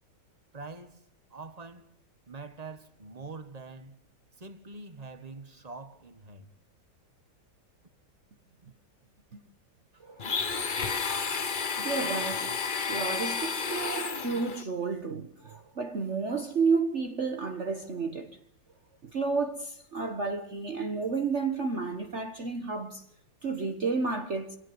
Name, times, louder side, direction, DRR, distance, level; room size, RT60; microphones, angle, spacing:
voice 1, 0.5-1.9 2.3-4.0 4.4-6.5, right 3 dB, 20° right, 1.5 m, -44 dB
voice 2, 10.0-10.4 10.8-10.9 11.8-12.6 12.9-18.4 19.0-23.0 23.4-24.6, right 4 dB, 40° right, 1.3 m, -31 dB
Domestic sounds home sounds, 10.2-14.6, left 5 dB, 35° left, 0.8 m, -31 dB
25.5 x 17.0 x 9.3 m
omnidirectional pair, 2.0 m